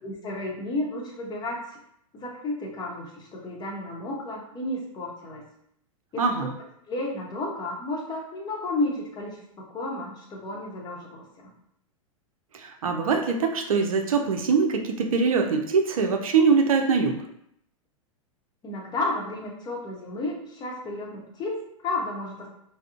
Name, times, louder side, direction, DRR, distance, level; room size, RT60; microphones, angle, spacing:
voice 1, 0.0-1.8 2.1-5.5 6.1-6.5 6.9-11.5 18.6-22.5, left 2 dB, 25° left, -1 dB, 0.8 m, -32 dB
voice 2, 12.5-17.2, right 5 dB, 80° right, 4 dB, 0.5 m, -23 dB
3.5 x 2.0 x 2.4 m, 0.72 s
hypercardioid pair, 105°, 18 cm